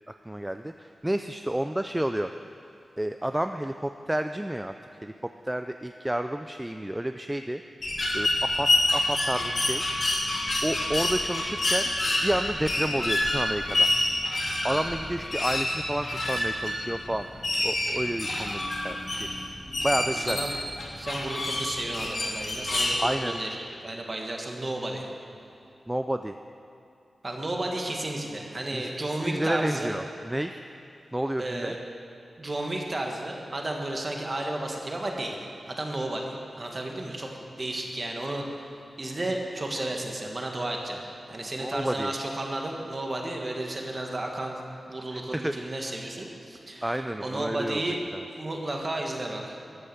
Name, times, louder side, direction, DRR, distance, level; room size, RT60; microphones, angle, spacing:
voice 1, 0.1-2.3 3.0-4.7 5.0-5.1 5.4-7.6 8.1-9.8 10.6-11.9 12.2-13.9 14.6-17.3 17.6-19.3 19.8-20.4 23.0-23.4 25.9-26.3 28.7-30.6 31.1-31.7 41.6-42.1 45.1-45.9 46.8-48.2, right 1 dB, 10° right, 7 dB, 0.3 m, -30 dB
sound 1, 7.8-22.9, left 1 dB, 50° left, 2.9 m, -27 dB
voice 2, 20.1-20.5 21.0-25.1 27.2-29.9 31.4-31.8 32.4-35.4 35.7-38.6 39.0-41.0 41.3-44.6 44.9-48.0 48.4-49.6, right 1 dB, 30° right, 1 dB, 1.6 m, -33 dB
13.5 x 10.0 x 7.1 m, 2.7 s
wide cardioid pair, 150°, 0 cm